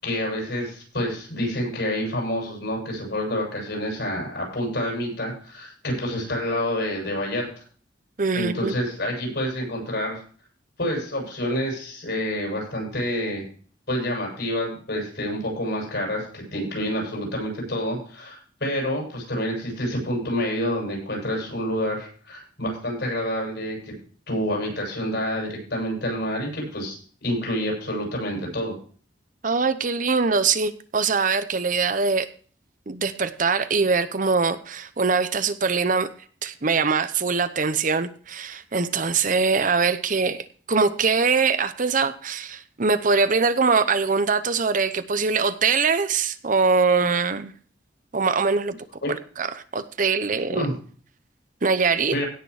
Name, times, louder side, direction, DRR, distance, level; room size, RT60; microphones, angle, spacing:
voice 1, 0.0-7.5 8.3-10.2 10.8-13.5 13.9-23.8 24.3-28.8 49.0-49.1 50.5-50.8 52.1-52.2, equal, 65° left, -1 dB, 7.7 m, -28 dB
voice 2, 8.2-8.7 29.4-32.3 32.9-36.1 36.4-40.4 40.7-47.5 48.1-48.8 49.4-50.6 51.6-52.1, right 4 dB, 45° right, 12 dB, 0.8 m, -22 dB
17.0 x 6.7 x 4.8 m, 0.43 s
head